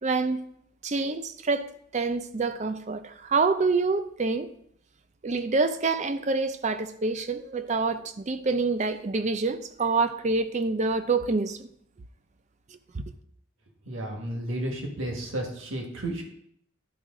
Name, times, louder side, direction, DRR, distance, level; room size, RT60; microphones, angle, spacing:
voice 1, 0.0-0.4 0.8-4.5 5.2-11.7 12.9-13.0, right 3 dB, 35° right, 0.5 m, -27 dB
voice 2, 13.8-16.2, right 1 dB, 70° right, 1.7 m, -32 dB
12.0 x 4.9 x 3.7 m
head